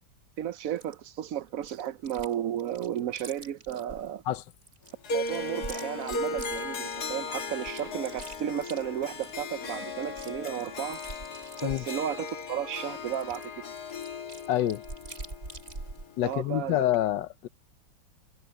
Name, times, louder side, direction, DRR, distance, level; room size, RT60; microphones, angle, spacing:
voice 1, 0.4-4.2 5.1-11.0 11.6-13.6 16.2-16.8, right 10 dB, 65° right, 0.8 m, -33 dB
Chewing mastication, 0.8-0.9 1.6-2.3 2.6-4.1 4.6-7.2 7.6-9.5 9.7-9.8 10.0-12.5 13.1-16.1, right 3 dB, 40° right, 3.5 m, -44 dB
Harp, 5.0-16.3, left 3 dB, 60° left, 2.0 m, -37 dB
voice 2, 14.5-14.8 16.2-17.5, left 13 dB, 80° left, 1.4 m, -27 dB
omnidirectional pair, 1.9 m